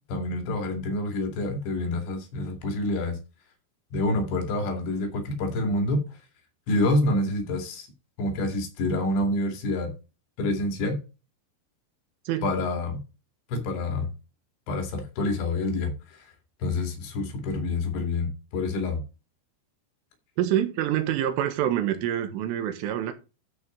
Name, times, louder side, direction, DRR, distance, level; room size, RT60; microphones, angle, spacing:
voice 1, 0.1-3.2 3.9-6.1 6.7-7.9 8.2-9.9 10.4-11.0 12.4-13.0 13.5-14.1 14.7-16.3 16.6-19.0, left 2 dB, 70° left, 4.8 m, -27 dB
voice 2, 20.4-23.1, right 11 dB, 85° right, 3.9 m, -26 dB
13.0 x 6.1 x 3.9 m
omnidirectional pair, 5.6 m